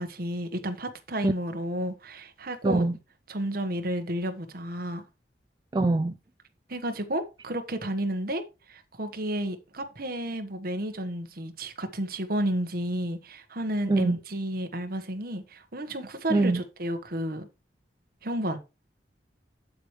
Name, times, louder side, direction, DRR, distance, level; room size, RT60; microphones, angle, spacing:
voice 1, 0.0-2.8 3.3-5.0 6.7-8.4 8.7-17.5 18.2-18.6, right 1 dB, 55° right, 1.4 m, -32 dB
voice 2, 2.6-2.9 5.7-6.1 13.9-14.2 16.3-16.6, right 2 dB, 25° right, 0.4 m, -23 dB
8.2 x 7.8 x 3.2 m
head